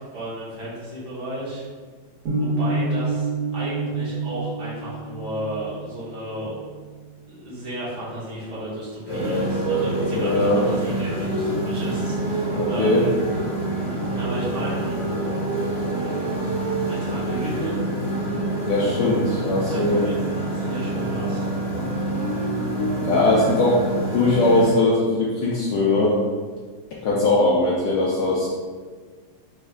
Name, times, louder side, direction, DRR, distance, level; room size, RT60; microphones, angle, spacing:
voice 1, 0.0-1.6 2.4-6.6 7.3-13.1 14.1-15.0 16.0-16.2 16.6-17.9 19.7-21.5, right 1 dB, 55° right, -9 dB, 1.9 m, -33 dB
sound 1, 2.3-8.3, right 3 dB, 80° right, 2.1 m, -29 dB
Motorcycle, 9.1-24.7, right 1 dB, 50° left, 2.2 m, -26 dB
voice 2, 10.1-10.6 12.5-13.0 18.7-20.0 23.0-23.9 24.1-26.2 27.0-28.5, left 2 dB, 70° left, -5 dB, 1.0 m, -20 dB
4.5 x 3.3 x 2.4 m, 1.5 s
omnidirectional pair, 2.2 m